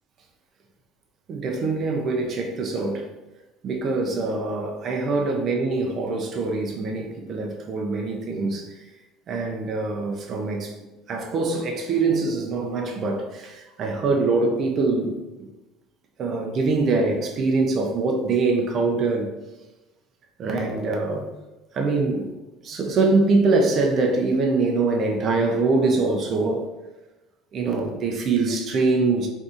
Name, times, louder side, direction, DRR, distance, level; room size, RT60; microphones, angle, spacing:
voice 1, 1.3-3.1 3.6-8.7 9.3-10.7 11.1-15.5 16.2-19.3 20.4-21.3 21.7-22.3 22.6-26.7 27.5-29.3, right 3 dB, 45° right, 0.5 m, -23 dB
3.4 x 2.7 x 2.5 m
supercardioid pair, 115°, 0 cm